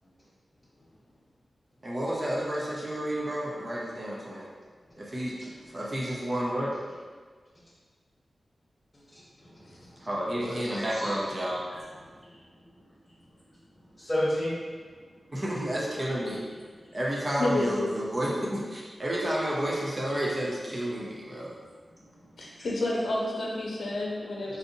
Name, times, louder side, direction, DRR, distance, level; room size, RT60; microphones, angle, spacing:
voice 1, 1.8-4.5 5.0-6.7 10.0-11.6 15.3-16.4 16.9-21.5, equal, 30° right, -5 dB, 0.6 m, -31 dB
voice 2, 9.1-11.3 11.7-12.7 14.0-14.9 16.8-16.9 21.4-21.6 22.0-22.7 24.5-24.6, left 1 dB, 5° left, -9 dB, 1.0 m, -36 dB
voice 3, 17.4-17.9 22.4-24.6, left 1 dB, 80° left, -3 dB, 0.6 m, -29 dB
3.8 x 2.6 x 2.6 m, 1.5 s
wide cardioid pair, 130°, 0 cm